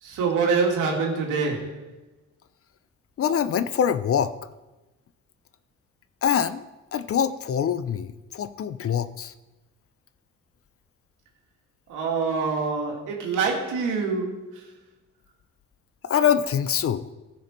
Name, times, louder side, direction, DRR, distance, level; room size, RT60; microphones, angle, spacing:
voice 1, 0.0-1.9 11.9-14.7, right 4 dB, 85° right, 2.5 m, -25 dB
voice 2, 3.2-4.3 6.2-6.6 6.9-9.3 16.0-17.1, left 8 dB, 50° left, 0.7 m, -24 dB
15.5 x 6.4 x 4.4 m
cardioid pair, 90°, 30 cm